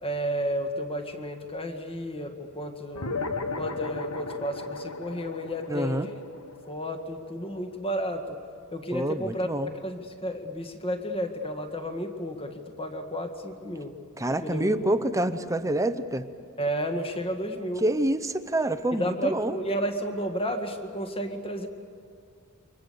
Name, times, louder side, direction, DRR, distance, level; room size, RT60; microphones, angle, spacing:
voice 1, 0.0-3.1 3.5-6.2 6.7-8.4 8.7-9.5 9.8-14.0 14.4-15.0 16.6-17.8 18.9-21.7, equal, 25° left, 5 dB, 1.8 m, -32 dB
sound 1, 2.9-7.8, left 3 dB, 75° left, 1.3 m, -35 dB
voice 2, 5.7-6.1 8.9-9.7 14.2-16.2 17.8-19.6, right 1 dB, 15° right, 10 dB, 0.8 m, -27 dB
29.0 x 25.0 x 6.9 m, 2.2 s
head